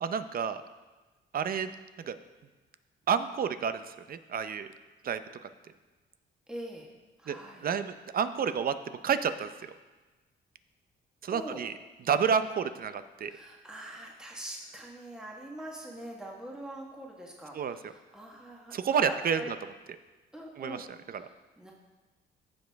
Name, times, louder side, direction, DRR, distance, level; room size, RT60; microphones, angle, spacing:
voice 1, 0.0-0.6 1.3-1.7 2.1-2.2 3.1-4.7 5.0-5.5 7.3-7.4 7.6-8.7 9.0-9.7 11.2-11.7 12.1-13.3 17.5-17.9 18.7-19.6 20.6-20.8 21.1-21.2, right 7 dB, 50° right, 11 dB, 0.6 m, -30 dB
voice 2, 6.5-6.9 7.2-7.7 11.3-11.6 13.3-19.5 20.3-20.8 21.1-21.7, right 1 dB, 5° right, -1 dB, 1.4 m, -43 dB
15.5 x 5.2 x 3.5 m, 1.2 s
cardioid pair, 90°, 20 cm